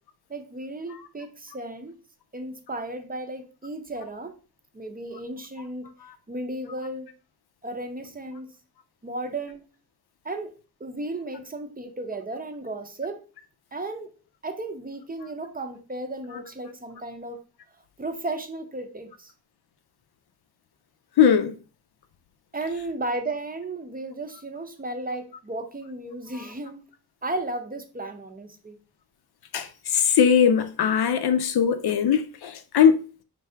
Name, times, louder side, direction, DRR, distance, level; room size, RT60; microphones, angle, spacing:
voice 1, 0.3-1.9 2.3-4.3 4.7-5.9 6.3-7.1 7.6-8.5 9.0-9.6 10.2-10.5 10.8-13.2 13.7-14.1 14.4-17.4 18.0-19.3 22.5-26.8 27.2-28.8, right 2 dB, 25° right, 0.5 m, -34 dB
voice 2, 21.2-21.6 29.5-33.0, left 7 dB, 85° left, 0.5 m, -20 dB
4.6 x 2.7 x 3.3 m
wide cardioid pair, 125°, 37 cm